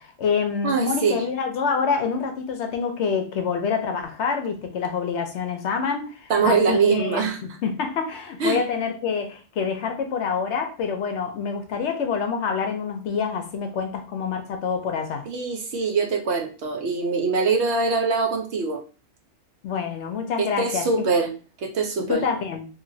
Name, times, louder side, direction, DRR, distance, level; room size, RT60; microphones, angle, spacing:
voice 1, 0.0-15.3 19.6-21.0 22.1-22.7, left 6 dB, 65° left, 6 dB, 0.8 m, -27 dB
voice 2, 0.6-1.2 6.3-7.4 8.4-8.6 15.3-18.8 20.4-21.3 21.6-22.2, right 4 dB, 65° right, 3 dB, 0.8 m, -23 dB
2.8 x 2.8 x 2.6 m, 0.36 s
omnidirectional pair, 1.4 m